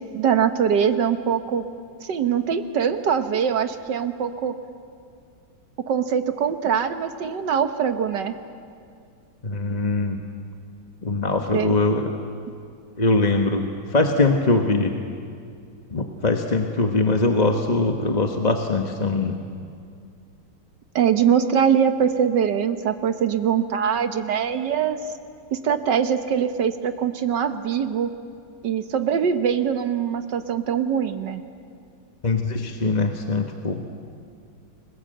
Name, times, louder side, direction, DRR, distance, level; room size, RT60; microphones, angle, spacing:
voice 1, 0.1-1.6 2.0-4.5 5.9-8.3 11.5-11.7 20.9-25.0 25.5-28.1 28.6-31.4, right 8 dB, 70° right, 9 dB, 1.6 m, -22 dB
voice 2, 9.4-10.2 11.0-12.1 13.0-13.6 13.9-15.0 15.9-19.4 32.2-33.8, left 2 dB, 25° left, 3 dB, 1.2 m, -22 dB
29.5 x 21.0 x 7.8 m, 2.3 s
omnidirectional pair, 2.0 m